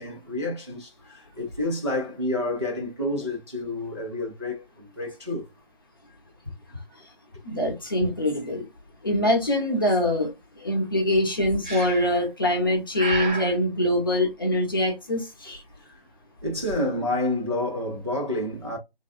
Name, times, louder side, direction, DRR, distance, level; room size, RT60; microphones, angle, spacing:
voice 1, 0.0-5.5 15.8-16.0 16.4-18.8, left 1 dB, 30° right, 0.4 m, -29 dB
voice 2, 7.4-8.7 9.0-15.6, left 1 dB, 20° left, 0.8 m, -24 dB
Breathing, 11.6-12.3 13.0-13.6, right 3 dB, 50° right, 0.9 m, -31 dB
3.4 x 2.2 x 2.3 m
figure-of-eight pair, 165°, 30 cm